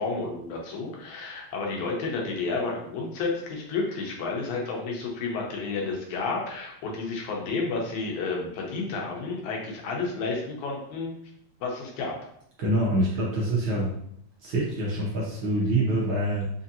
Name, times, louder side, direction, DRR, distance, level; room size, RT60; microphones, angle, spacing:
voice 1, 0.0-11.1 11.6-12.2, left 3 dB, 90° left, -1 dB, 2.3 m, -31 dB
voice 2, 12.6-13.9 14.4-16.5, right 1 dB, 70° right, -4 dB, 1.2 m, -25 dB
5.0 x 2.7 x 2.5 m, 0.69 s
omnidirectional pair, 3.3 m